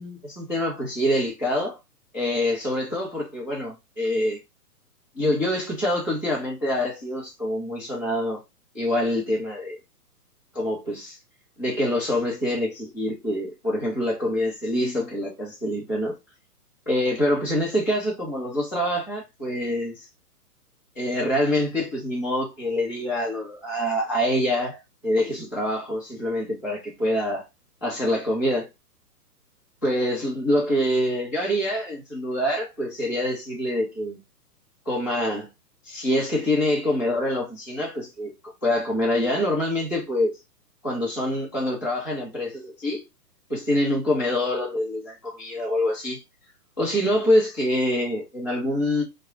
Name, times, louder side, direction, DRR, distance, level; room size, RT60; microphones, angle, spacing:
voice 1, 0.0-1.8 2.1-4.4 5.1-8.4 8.7-9.8 10.5-11.2 11.6-16.1 16.9-20.1 21.0-27.4 27.8-28.7 29.8-34.2 34.8-35.5 35.8-40.4 40.8-43.0 43.5-46.2 46.8-49.0, left 1 dB, 10° left, 0.6 m, -25 dB
3.9 x 2.0 x 2.4 m
hypercardioid pair, 175°, 47 cm